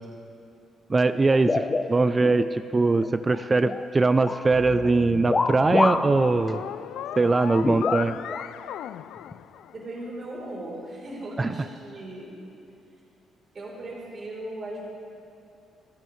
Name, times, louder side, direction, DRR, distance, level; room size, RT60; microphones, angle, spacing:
voice 1, 0.9-6.6 7.2-8.1 11.4-11.5, right 3 dB, 25° right, 12 dB, 0.4 m, -22 dB
sound 1, 1.3-2.4 2.8-3.9 4.2-4.5 5.3-6.1 6.5-6.6 7.6-8.5 9.3-9.4 10.3-10.5, left 3 dB, 30° left, 0.7 m, -27 dB
sound 2, 4.5-10.0, left 11 dB, 80° left, 0.3 m, -36 dB
voice 2, 9.7-12.4 13.5-14.9, right 1 dB, 45° right, -3 dB, 3.7 m, -37 dB
29.5 x 10.0 x 3.2 m, 2.7 s
cardioid pair, 90°, 0 cm